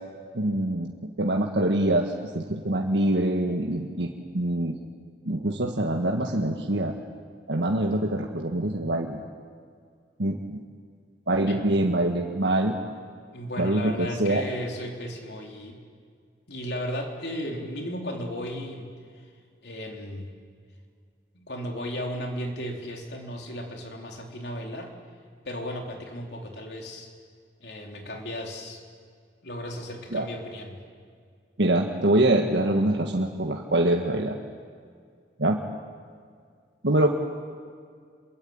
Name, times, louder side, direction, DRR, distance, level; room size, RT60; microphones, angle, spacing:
voice 1, 0.3-0.9 1.2-4.1 4.3-4.7 5.2-6.9 7.5-9.2 10.2-10.6 11.3-12.8 13.6-14.4 30.1-30.3 31.6-34.4 35.4-35.6 36.8-37.1, right 1 dB, 85° right, 1 dB, 1.7 m, -24 dB
voice 2, 11.5-11.9 13.3-15.8 16.5-18.9 19.1-19.2 19.6-20.3 21.3-24.9 25.4-27.1 27.6-28.8 29.4-30.8, equal, 70° left, 2 dB, 3.9 m, -35 dB
27.5 x 22.5 x 8.8 m, 2.1 s
head